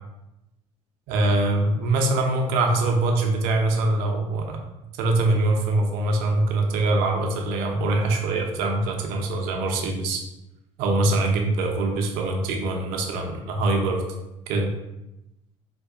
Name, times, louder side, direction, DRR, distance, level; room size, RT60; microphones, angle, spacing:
voice 1, 1.1-4.6 5.0-10.2 10.8-14.0 14.5-14.7, right 2 dB, 65° right, 2 dB, 0.8 m, -23 dB
4.2 x 2.6 x 3.7 m, 0.94 s
hypercardioid pair, 60°, 16 cm